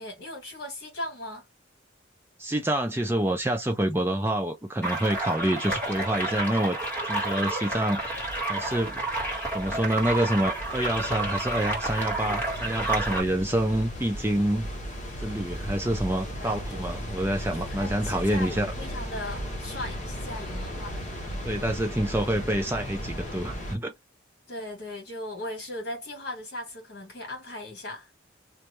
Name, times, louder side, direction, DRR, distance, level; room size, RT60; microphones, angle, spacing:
voice 1, 0.0-1.5 16.4-16.9 17.5-21.0 24.5-28.1, left 1 dB, 55° left, 1.6 m, -38 dB
voice 2, 2.4-6.8 7.1-8.2 8.5-9.0 9.5-14.7 15.2-18.7 21.5-23.9, right 1 dB, 10° right, 0.4 m, -27 dB
sound 1, 4.8-13.2, right 2 dB, 10° left, 1.7 m, -30 dB
sound 2, 8.1-23.8, equal, 40° left, 0.9 m, -36 dB
2.7 x 2.4 x 3.1 m
head